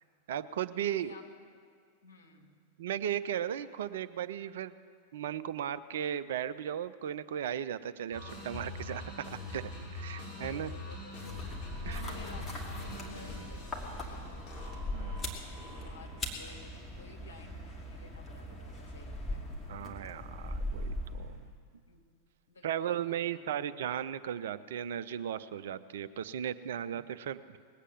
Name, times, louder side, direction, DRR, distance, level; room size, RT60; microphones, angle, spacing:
voice 1, 0.3-1.2 2.8-4.7 5.1-10.7 11.9-12.0 14.9-15.3 19.7-21.3 22.6-27.6, right 10 dB, 60° right, 13 dB, 0.5 m, -36 dB
voice 2, 0.8-1.3 2.0-2.6 10.4-11.6 11.8-19.4 21.9-22.1 22.5-23.6, left 3 dB, 75° left, 1 dB, 2.0 m, -54 dB
sound 1, 8.1-16.2, left 2 dB, 35° left, 4.9 m, -44 dB
sound 2, 11.1-21.5, left 1 dB, 15° left, 2.3 m, -40 dB
20.0 x 8.3 x 7.5 m, 2.1 s
figure-of-eight pair, 90°, 0 cm